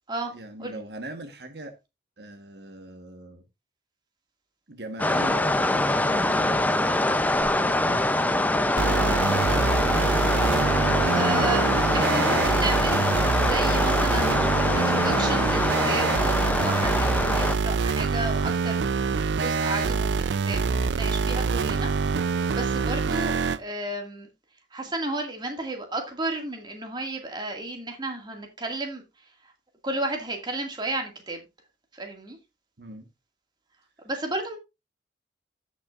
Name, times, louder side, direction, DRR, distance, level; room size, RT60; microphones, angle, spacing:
voice 1, 0.3-1.7 2.2-3.4 4.7-10.2 32.8-33.0, right 1 dB, 65° right, 1.3 m, -41 dB
sound 1, 5.0-17.6, left 1 dB, 10° left, 0.5 m, -24 dB
sound 2, 8.8-23.6, right 5 dB, 80° right, 0.5 m, -25 dB
voice 2, 11.1-21.9 22.3-24.3 24.7-29.0 29.4-29.5 29.8-31.4 31.9-32.4 34.0-34.6, right 2 dB, 25° right, 2.0 m, -33 dB
16.5 x 6.0 x 2.5 m
head